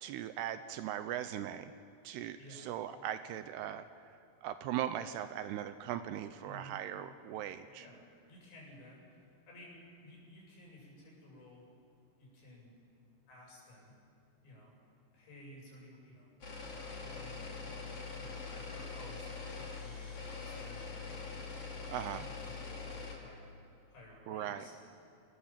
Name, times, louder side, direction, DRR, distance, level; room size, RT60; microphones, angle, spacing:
voice 1, 0.0-1.7 2.0-3.9 4.4-7.9 21.9-22.2 24.3-24.6, right 11 dB, 80° right, 11 dB, 2.5 m, -39 dB
voice 2, 2.3-2.7 6.4-6.8 7.8-8.0 8.3-9.0 9.5-11.7 12.2-12.8 13.3-13.9 14.4-14.7 15.1-16.3 17.0-17.5 18.2-21.5 21.9-23.6 23.9-24.7, left 1 dB, 75° left, -3 dB, 9.5 m, -55 dB
sound 1, 16.4-23.2, left 4 dB, 35° left, 3.4 m, -43 dB
28.5 x 19.0 x 7.5 m, 2.5 s
omnidirectional pair, 5.1 m